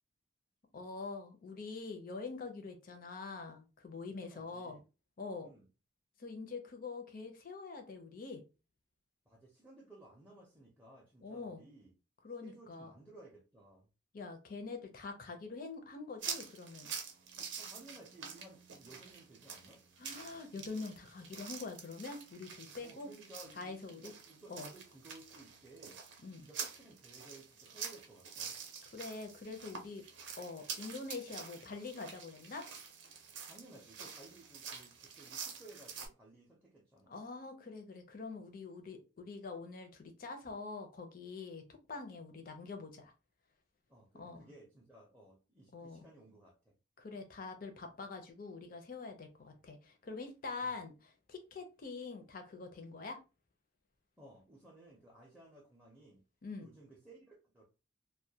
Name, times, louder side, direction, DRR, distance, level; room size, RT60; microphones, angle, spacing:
voice 1, 0.7-4.8 5.2-5.5 6.2-8.4 11.2-11.6 12.2-12.9 14.1-16.9 20.0-23.1 23.6-24.1 24.5-24.7 26.2-26.5 28.9-30.0 30.4-32.7 37.1-43.1 44.1-44.5 45.7-46.0 47.0-53.2 56.4-56.7, left 4 dB, 45° left, 5 dB, 0.5 m, -45 dB
voice 2, 4.1-4.8 5.4-5.7 9.3-11.9 12.4-13.9 17.6-19.8 22.8-26.0 26.4-28.6 33.5-37.1 43.9-46.7 50.6-50.7 54.2-56.2 56.6-57.6, right 2 dB, 10° right, -3 dB, 0.5 m, -57 dB
sound 1, 16.2-36.1, right 6 dB, 65° right, 0.6 m, -47 dB
2.2 x 2.1 x 2.7 m, 0.30 s
head